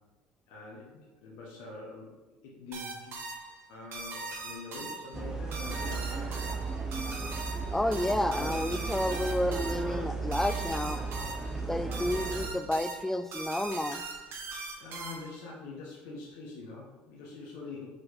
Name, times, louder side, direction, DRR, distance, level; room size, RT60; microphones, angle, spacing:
voice 1, 0.5-2.1 2.4-3.2 3.7-6.3 14.8-17.9, left 3 dB, 70° left, -4 dB, 1.3 m, -44 dB
sound 1, 2.7-15.5, right 3 dB, 55° right, 1.5 m, -41 dB
sound 2, 5.1-12.5, right 4 dB, 10° right, 0.9 m, -35 dB
voice 2, 7.7-11.0 11.7-14.0, left 1 dB, 5° left, 12 dB, 0.4 m, -30 dB
4.9 x 4.7 x 4.2 m, 1.2 s
hypercardioid pair, 80°, 5 cm